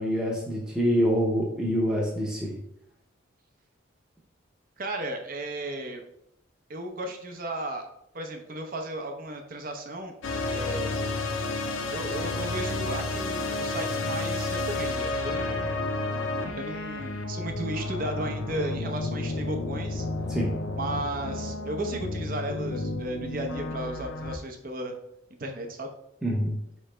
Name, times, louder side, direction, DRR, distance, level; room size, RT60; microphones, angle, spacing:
voice 1, 0.0-2.6 20.3-20.5 26.2-26.5, equal, 5° right, -3 dB, 0.6 m, -26 dB
voice 2, 4.8-6.0 6.7-7.9 8.1-10.1 10.5-10.9 11.9-15.8 16.6-20.1 20.8-24.9 25.4-25.9, right 1 dB, 45° right, 4 dB, 0.6 m, -35 dB
sound 1, 10.2-24.4, left 2 dB, 75° left, 0.5 m, -31 dB
4.8 x 3.2 x 3.2 m, 0.78 s
head